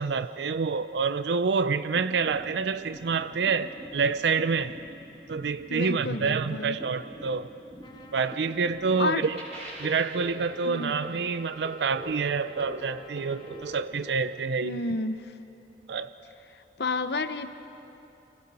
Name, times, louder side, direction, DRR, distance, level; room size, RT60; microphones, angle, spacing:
voice 1, 0.0-4.8 5.3-7.5 8.1-9.4 9.8-14.8 15.9-16.1, right 5 dB, 80° right, 0.5 m, -27 dB
sound 1, 1.8-14.1, right 1 dB, 40° right, 5.2 m, -44 dB
voice 2, 5.7-6.8 9.0-9.2 10.6-10.9 14.6-15.3 16.8-17.5, left 3 dB, 70° left, 0.8 m, -30 dB
Trumpet, 7.8-13.9, left 4 dB, 25° left, 0.9 m, -52 dB
30.0 x 23.5 x 4.2 m
head